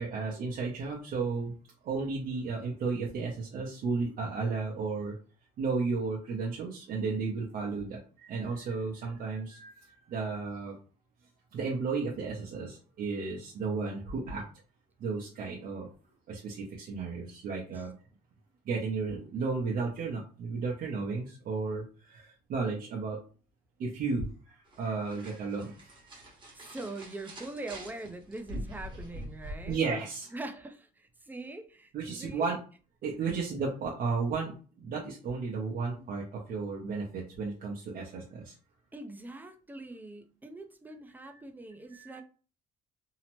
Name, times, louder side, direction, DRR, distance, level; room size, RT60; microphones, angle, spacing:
voice 1, 0.0-1.6 1.8-5.1 5.6-10.8 11.5-14.4 15.0-15.9 16.3-17.9 18.7-23.2 23.8-26.0 29.7-30.3 31.9-32.6 33.0-38.5 41.9-42.2, right 4 dB, 55° right, -2 dB, 0.7 m, -33 dB
sound 1, 24.7-29.7, equal, 30° right, 1.0 m, -44 dB
voice 2, 26.5-29.8 30.3-32.5 33.2-33.3 38.9-42.2, right 2 dB, 10° right, 6 dB, 0.4 m, -43 dB
2.8 x 2.0 x 2.9 m, 0.38 s
cardioid pair, 110°, 17 cm